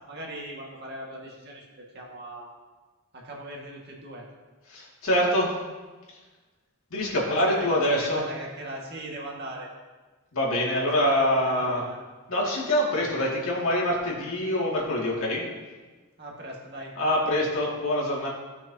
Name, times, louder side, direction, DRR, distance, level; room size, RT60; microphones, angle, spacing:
voice 1, 0.1-1.7 1.9-2.5 3.1-4.2 7.2-9.7 10.8-12.0 16.2-16.9, right 1 dB, 45° right, -2 dB, 1.8 m, -39 dB
voice 2, 4.7-5.5 6.9-8.3 10.3-11.8 12.3-15.5 17.0-18.3, left 1 dB, 70° left, -4 dB, 2.3 m, -25 dB
16.5 x 6.0 x 2.8 m, 1.3 s
head